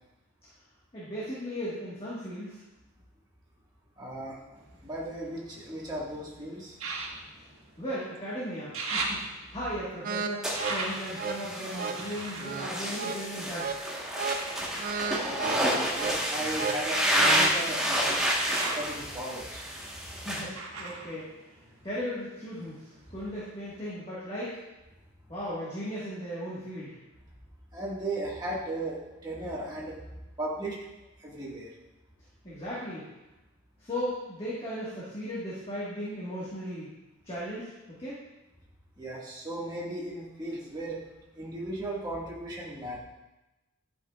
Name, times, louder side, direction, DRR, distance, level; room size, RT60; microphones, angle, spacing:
voice 1, 0.9-2.6 7.8-9.2 9.5-13.8 20.2-21.3 21.8-24.6 25.3-26.9 32.4-33.1 33.8-36.9 37.2-37.7 38.0-38.2, equal, 25° left, -9 dB, 1.6 m, -36 dB
voice 2, 4.0-6.8 15.2-18.2 18.7-19.7 27.7-30.0 30.4-30.8 31.2-31.7 39.0-41.0 41.3-43.0, right 1 dB, 20° right, -6 dB, 1.7 m, -36 dB
sound 1, 4.6-5.9 6.7-8.3 8.5-13.7 14.3-22.2 22.5-23.3 23.8-23.9, right 3 dB, 80° right, 1.5 m, -39 dB
sound 2, 10.0-17.6, right 5 dB, 40° right, 0.4 m, -35 dB
sound 3, 10.4-20.4, equal, 5° right, 1.3 m, -30 dB
11.0 x 5.7 x 2.4 m, 1.0 s
head